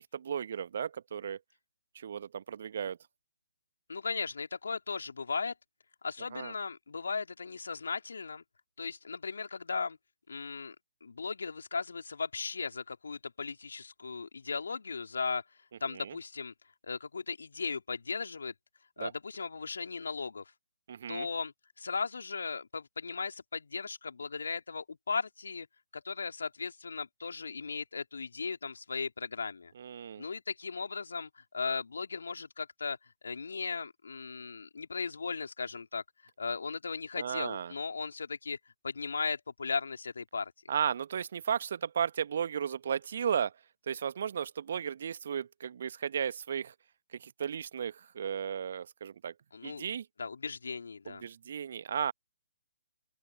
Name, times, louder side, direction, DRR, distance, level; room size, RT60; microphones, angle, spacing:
voice 1, 0.1-1.4 1.9-3.0 6.3-6.5 15.9-16.1 19.0-19.1 20.9-21.3 29.7-30.2 37.1-37.7 40.7-43.5 43.9-46.7 47.1-49.3 49.6-50.1 51.1-52.1, right 8 dB, 50° right, 1.2 m, -34 dB
voice 2, 3.9-5.5 6.0-8.4 8.8-10.0 10.3-10.7 11.0-15.4 15.8-16.5 16.8-18.5 19.0-20.4 21.1-25.7 25.9-29.7 30.2-33.0 33.2-36.0 36.4-38.6 38.8-40.5 49.5-49.9 50.2-51.2, left 4 dB, 65° left, 3.0 m, -37 dB
open air
figure-of-eight pair, 135°, 0 cm